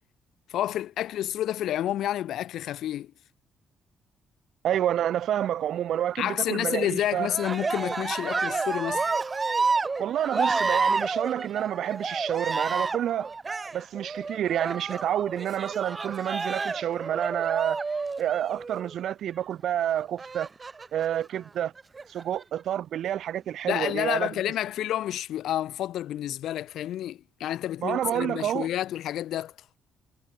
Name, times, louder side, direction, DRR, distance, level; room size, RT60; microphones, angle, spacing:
voice 1, 0.5-3.1 6.2-9.1 23.7-29.5, left 12 dB, 80° left, 2.0 m, -29 dB
voice 2, 4.6-7.3 10.0-13.3 13.7-17.8 18.2-20.5 20.9-21.7 22.1-24.4 27.8-28.7, right 11 dB, 70° right, 1.2 m, -29 dB
Cheering, 7.2-18.9 20.2-21.1 21.8-22.4, right 4 dB, 30° right, 4.8 m, -30 dB
cardioid pair, 90°, 0 cm